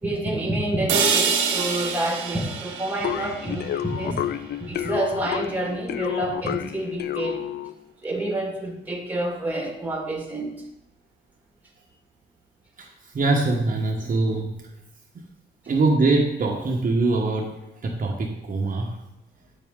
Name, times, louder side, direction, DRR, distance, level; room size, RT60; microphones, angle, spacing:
voice 1, 0.0-4.2 4.6-7.5 8.0-10.6, right 1 dB, 10° right, 2 dB, 1.7 m, -28 dB
sound 1, 0.9-4.9, right 6 dB, 90° right, 1.3 m, -27 dB
sound 2, 3.0-7.8, left 11 dB, 55° left, 0.4 m, -30 dB
voice 2, 12.8-14.6 15.7-19.0, right 3 dB, 40° right, 0 dB, 1.1 m, -23 dB
8.3 x 6.0 x 3.6 m, 0.85 s
cardioid pair, 90°, 20 cm